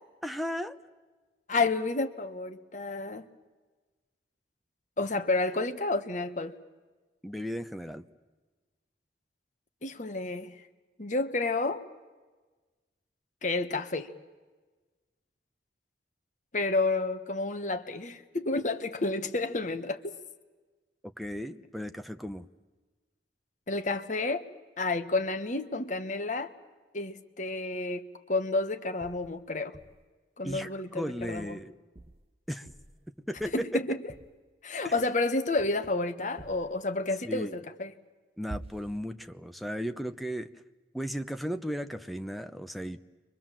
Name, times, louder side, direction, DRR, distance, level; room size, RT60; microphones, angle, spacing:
voice 1, 0.2-0.8 7.2-8.0 21.2-22.5 30.4-30.7 30.9-31.7 32.5-32.7 33.3-33.7 34.8-34.9 37.2-37.6 38.4-40.5 40.9-43.0, equal, ahead, 9 dB, 0.8 m, -35 dB
voice 2, 1.5-3.2 5.0-6.5 9.8-10.6 11.0-11.8 13.4-14.1 16.5-20.1 23.7-24.4 24.8-26.5 26.9-29.7 30.4-31.6 33.5-34.0 34.6-37.9, left 3 dB, 45° left, 8 dB, 1.4 m, -30 dB
sound 1, 29.0-29.4 29.7-30.1 30.5-30.7 31.2-31.6 32.0-32.3 32.7-33.0 33.3-33.8 34.1-34.3 34.9-35.2 35.6-36.0 36.4-36.7 38.5-39.1, right 2 dB, 35° right, 0.8 m, -48 dB
30.0 x 23.5 x 7.5 m, 1.3 s
head